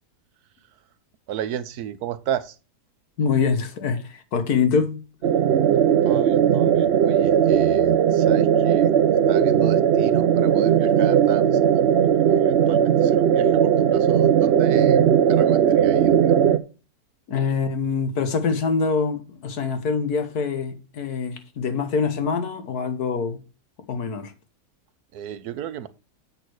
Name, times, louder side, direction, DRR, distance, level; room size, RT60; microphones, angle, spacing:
voice 1, 1.3-2.6 6.0-8.9 9.3-11.9 12.3-16.5 25.1-25.9, right 10 dB, 85° right, 1.3 m, -32 dB
voice 2, 3.2-5.0 17.3-23.4 23.9-24.3, left 5 dB, 85° left, 1.8 m, -24 dB
sound 1, 5.2-16.6, right 9 dB, 55° right, 0.7 m, -18 dB
7.5 x 6.5 x 4.6 m
omnidirectional pair, 1.6 m